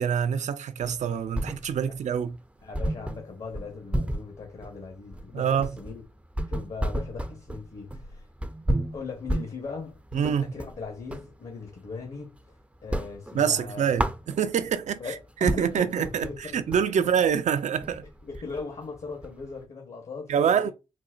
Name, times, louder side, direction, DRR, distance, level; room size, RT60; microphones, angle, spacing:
voice 1, 0.0-2.4 5.3-5.7 10.1-10.5 13.3-15.0 15.4-18.0 20.3-20.7, right 8 dB, 65° right, 0.5 m, -25 dB
sound 1, 0.8-2.0 2.3-2.4 2.7-11.3 11.7-12.5 12.8-14.8 15.2-15.3 15.5-19.6, right 1 dB, 10° right, 0.5 m, -32 dB
voice 2, 2.6-6.0 6.5-8.3 8.9-12.4 12.8-14.1 15.0-16.8 18.2-20.7, left 4 dB, 50° left, 1.0 m, -39 dB
4.0 x 2.1 x 2.4 m
supercardioid pair, 40°, 13 cm